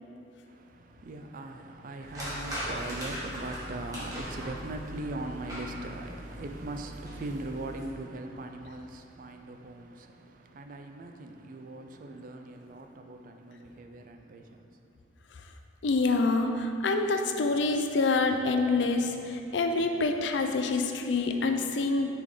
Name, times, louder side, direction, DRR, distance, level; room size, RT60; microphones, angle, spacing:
voice 1, 0.5-14.6, right 2 dB, 45° right, 0.4 m, -40 dB
sound 1, 2.0-7.8, equal, 20° right, 1.3 m, -39 dB
voice 2, 15.8-22.2, left 3 dB, 70° left, 0.4 m, -26 dB
5.9 x 4.8 x 3.8 m
head